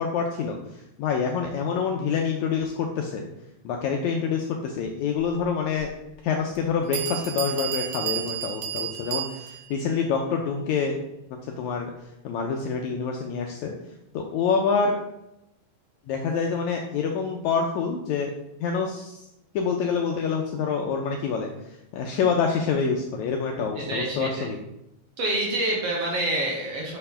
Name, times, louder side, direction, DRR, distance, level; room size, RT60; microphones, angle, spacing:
voice 1, 0.0-3.2 3.6-5.9 6.2-11.0 11.4-11.9 12.2-13.7 14.1-15.0 16.1-18.3 18.6-19.3 19.5-24.6, left 5 dB, 80° left, 2 dB, 1.7 m, -26 dB
Bell, 5.8-5.9 6.6-6.7 6.9-9.7, right 11 dB, 90° right, 2.8 m, -31 dB
voice 2, 23.7-24.5 25.2-27.0, right 1 dB, 60° right, -2 dB, 1.8 m, -27 dB
6.0 x 4.4 x 5.5 m, 0.88 s
omnidirectional pair, 3.9 m